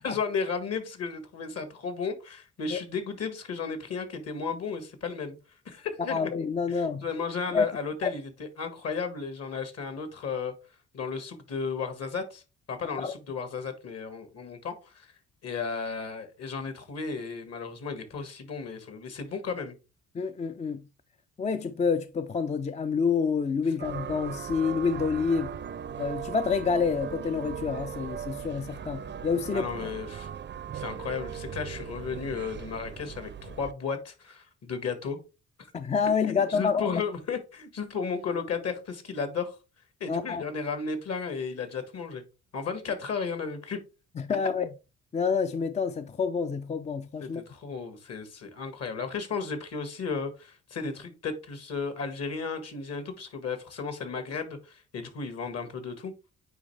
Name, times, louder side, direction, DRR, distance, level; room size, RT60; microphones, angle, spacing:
voice 1, 0.0-5.4 5.6-6.3 6.7-10.5 10.9-12.4 12.7-15.1 15.4-19.8 29.5-30.3 30.7-35.2 36.3-39.6 40.0-42.2 42.5-43.8 47.2-56.1, left 5 dB, 55° left, 1.7 m, -34 dB
voice 2, 6.1-7.0 7.5-7.7 8.0-8.1 13.0-13.1 20.1-20.8 21.4-25.5 26.0-29.7 35.7-37.0 40.1-40.4 44.2-44.7 45.1-47.4, left 5 dB, 25° left, 0.4 m, -28 dB
sound 1, 23.8-33.7, right 8 dB, 40° right, 0.5 m, -38 dB
9.2 x 3.2 x 3.3 m
cardioid pair, 90°, 30 cm